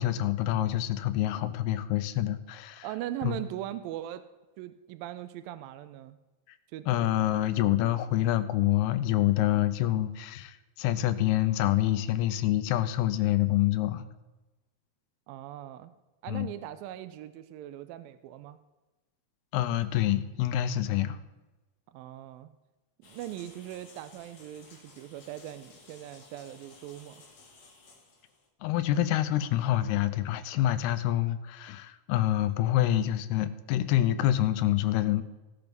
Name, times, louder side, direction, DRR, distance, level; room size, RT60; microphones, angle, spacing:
voice 1, 0.0-2.9 3.2-3.4 6.9-14.0 16.3-16.5 19.5-21.2 28.6-35.2, left 13 dB, 90° left, 11 dB, 2.7 m, -27 dB
voice 2, 2.8-4.2 4.6-6.2 6.7-6.9 15.3-15.9 16.2-18.6 21.9-22.5 23.0-27.2, right 13 dB, 80° right, 12 dB, 2.1 m, -40 dB
sound 1, 23.0-28.5, left 3 dB, 45° left, 1.5 m, -55 dB
17.0 x 6.1 x 5.2 m, 1.1 s
omnidirectional pair, 4.5 m